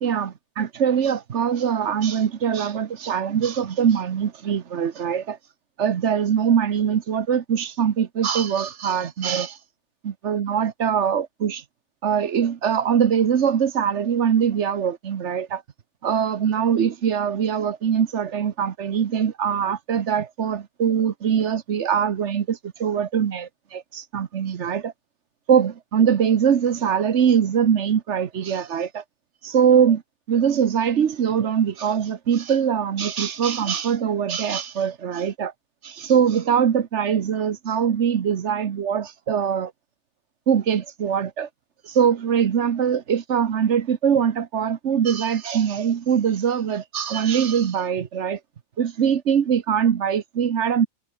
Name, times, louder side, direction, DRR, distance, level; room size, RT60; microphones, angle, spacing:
voice 1, 0.0-5.4 5.8-9.6 10.2-11.6 12.0-15.6 16.0-24.9 25.5-29.0 29.4-30.0 30.3-35.5 35.8-39.7 40.5-41.5 41.8-48.4 48.8-50.9, right 8 dB, 60° right, 1.2 m, -22 dB
omnidirectional pair, 1.4 m